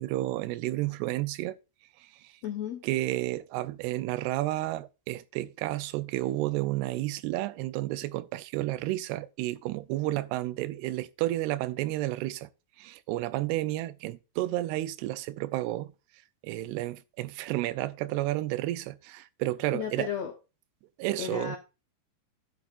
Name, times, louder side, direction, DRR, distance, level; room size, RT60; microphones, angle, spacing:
voice 1, 0.0-1.6 2.8-12.5 12.8-15.9 16.4-20.1 21.0-21.6, right 16 dB, 90° right, 2.7 m, -31 dB
voice 2, 2.4-2.8 19.7-20.3 21.2-21.6, left 9 dB, 80° left, 1.5 m, -33 dB
11.5 x 9.2 x 2.5 m
omnidirectional pair, 4.6 m